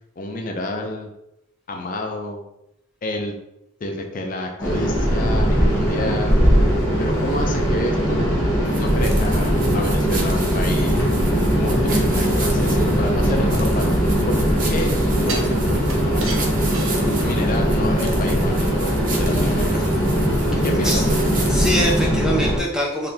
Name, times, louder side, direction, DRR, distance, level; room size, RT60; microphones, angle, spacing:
voice 1, 0.2-1.1 1.7-2.4 3.0-3.4 3.8-6.4 7.0-8.4 8.8-11.0 11.5-13.9 14.3-14.4 14.7-14.9 15.2-16.4 17.2-20.0 20.6-21.2, left 1 dB, 40° left, 2 dB, 0.5 m, -29 dB
sound 1, 4.6-22.6, equal, 15° left, 0.9 m, -20 dB
Walking through grass (edit), 8.7-22.1, right 3 dB, 40° right, 0.6 m, -35 dB
sound 2, 13.3-14.4 15.3-17.6 18.0-18.1, right 2 dB, 80° right, 0.9 m, -34 dB
voice 2, 20.5-21.0 21.5-23.1, equal, 5° right, -2 dB, 0.5 m, -24 dB
3.9 x 3.2 x 2.8 m, 0.85 s
head